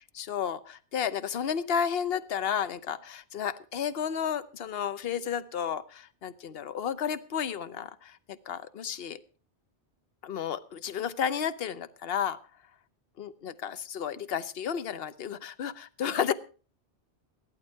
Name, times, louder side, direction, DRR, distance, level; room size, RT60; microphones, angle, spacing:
voice 1, 0.2-9.2 10.2-12.4 13.2-16.3, left 8 dB, 60° left, 13 dB, 1.0 m, -32 dB
14.5 x 12.0 x 4.5 m, 0.36 s
omnidirectional pair, 1.2 m